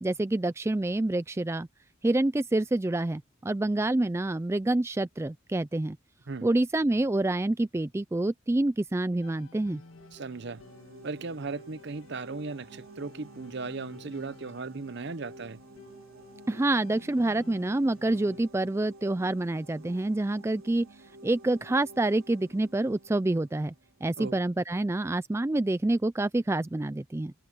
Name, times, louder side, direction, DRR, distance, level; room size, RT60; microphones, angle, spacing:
voice 1, 0.0-1.7 2.0-6.0 6.4-9.8 16.5-20.9 21.2-23.7 24.0-27.3, right 2 dB, 15° right, 0.3 m, -27 dB
sound 1, 9.2-18.4, left 2 dB, 75° left, 1.8 m, -53 dB
sound 2, 9.8-24.4, right 1 dB, 85° right, 3.4 m, -52 dB
voice 2, 10.1-10.6 11.0-15.6 24.2-24.4, right 3 dB, 55° right, 0.7 m, -37 dB
open air
head